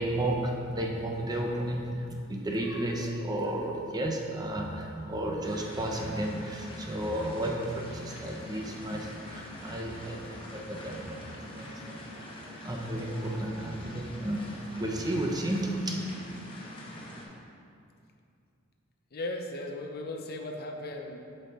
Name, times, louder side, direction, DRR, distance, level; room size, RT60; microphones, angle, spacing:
voice 1, 0.0-16.0, right 1 dB, 20° right, 0 dB, 0.7 m, -33 dB
sound 1, 5.4-17.2, left 1 dB, 25° left, 1.1 m, -44 dB
voice 2, 19.1-21.2, left 2 dB, 50° left, 2 dB, 0.7 m, -37 dB
7.9 x 5.5 x 4.2 m, 2.4 s
head